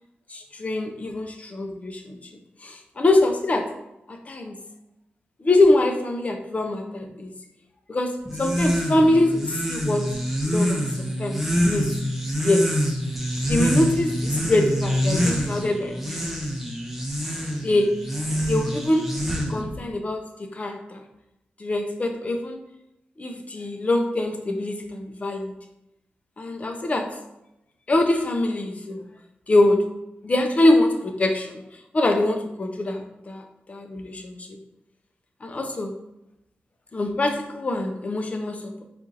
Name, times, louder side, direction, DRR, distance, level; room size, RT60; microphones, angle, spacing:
voice 1, 0.3-2.2 2.6-3.7 4.1-4.6 5.4-7.3 7.9-10.0 10.5-11.9 12.4-12.6 13.5-16.4 17.6-17.9 18.4-19.1 19.5-21.0 21.6-22.6 23.2-25.5 26.4-27.1 27.9-29.1 29.5-29.8 30.2-31.6 31.9-33.4 33.7-34.5 35.4-36.0 36.9-38.8, left 2 dB, 35° left, 5 dB, 0.5 m, -23 dB
sound 1, 8.3-19.8, equal, 5° right, 0.6 m, -26 dB
4.3 x 2.5 x 2.6 m, 0.87 s
cardioid pair, 75°, 4 cm